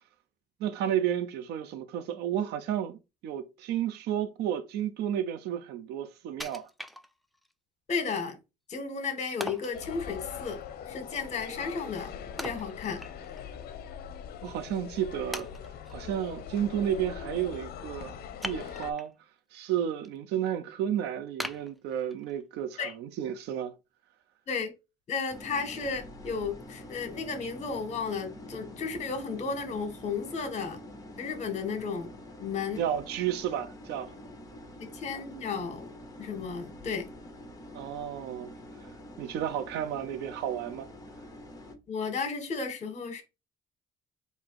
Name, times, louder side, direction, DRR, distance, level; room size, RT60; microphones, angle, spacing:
voice 1, 0.6-6.7 14.4-15.5 15.9-19.1 19.5-23.8 32.8-34.2 37.7-38.5 38.8-38.9 39.2-40.9, right 10 dB, 80° right, 0.6 m, -32 dB
Wood, 6.4-7.5 8.0-8.1 9.4-9.8 12.4-13.5 13.8-13.9 14.6-14.7 15.3-16.0 18.4-19.1 19.6-20.1 20.5-20.6 21.4-22.4 22.9-23.0, equal, ahead, 0.4 m, -40 dB
voice 2, 7.9-8.4 8.7-10.6 10.9-12.1 12.4-13.0 22.8-22.9 24.5-24.7 25.1-30.8 31.2-32.1 32.4-32.9 34.8-35.9 36.2-37.1 41.9-43.2, left 5 dB, 45° left, 1.5 m, -33 dB
sound 1, 9.7-18.9, left 8 dB, 65° left, 0.7 m, -41 dB
sound 2, 25.3-41.8, left 1 dB, 20° left, 1.1 m, -46 dB
4.0 x 2.7 x 4.7 m
cardioid pair, 110°, 17 cm